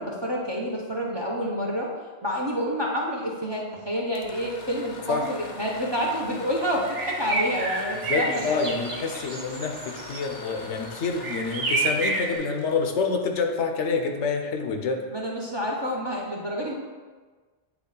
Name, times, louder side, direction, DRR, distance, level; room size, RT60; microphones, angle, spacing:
voice 1, 0.0-1.9 2.2-8.7 15.1-16.8, equal, 25° right, -2 dB, 0.6 m, -28 dB
sound 1, 4.0-13.8, left 3 dB, 50° left, 0.7 m, -43 dB
sound 2, 5.1-5.2 5.6-5.7 5.9-6.3 6.9-12.3, right 2 dB, 85° right, 1.3 m, -30 dB
voice 2, 8.1-15.0, left 4 dB, 75° left, 4 dB, 1.0 m, -27 dB
8.3 x 3.1 x 3.9 m, 1.4 s
omnidirectional pair, 1.2 m